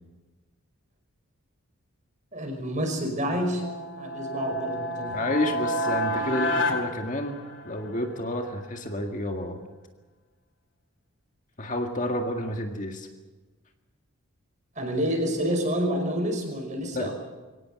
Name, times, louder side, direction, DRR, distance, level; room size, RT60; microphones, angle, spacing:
voice 1, 2.3-3.6 4.0-5.2 14.8-17.1, equal, 35° right, 4 dB, 5.4 m, -28 dB
sound 1, 3.5-7.9, left 1 dB, 55° left, 2.5 m, -29 dB
voice 2, 5.1-7.4 7.6-9.6 11.6-13.1 16.9-17.1, left 1 dB, 35° left, 4 dB, 1.9 m, -30 dB
24.0 x 18.0 x 7.7 m, 1.3 s
head